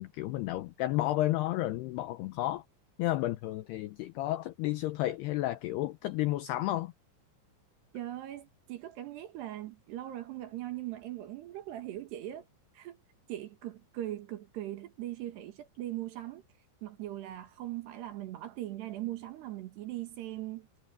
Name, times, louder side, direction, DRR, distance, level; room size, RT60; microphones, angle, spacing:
voice 1, 0.0-2.6 3.0-6.9, left 16 dB, 85° left, 2.3 m, -32 dB
voice 2, 7.9-12.4 12.7-13.0 13.3-16.4 16.8-20.7, right 14 dB, 65° right, 3.6 m, -40 dB
omnidirectional pair, 5.6 m